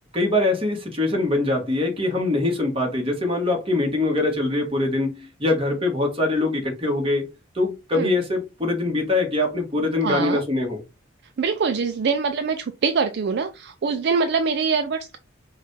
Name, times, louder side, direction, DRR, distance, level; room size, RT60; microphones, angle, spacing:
voice 1, 0.1-7.3 7.5-10.8, left 2 dB, 30° right, 1.4 m, -23 dB
voice 2, 10.0-10.4 11.4-15.2, right 5 dB, 55° right, 0.4 m, -24 dB
5.3 x 2.4 x 3.2 m
head